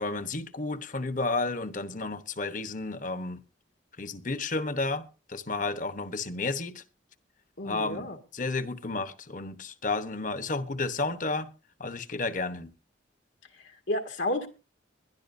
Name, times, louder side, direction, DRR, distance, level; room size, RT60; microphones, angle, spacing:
voice 1, 0.0-3.4 4.0-6.8 7.6-11.5 11.8-12.7, left 3 dB, 45° left, 1.0 m, -32 dB
voice 2, 7.6-8.2 13.6-14.5, left 1 dB, 80° left, 2.0 m, -31 dB
21.5 x 12.0 x 2.7 m
head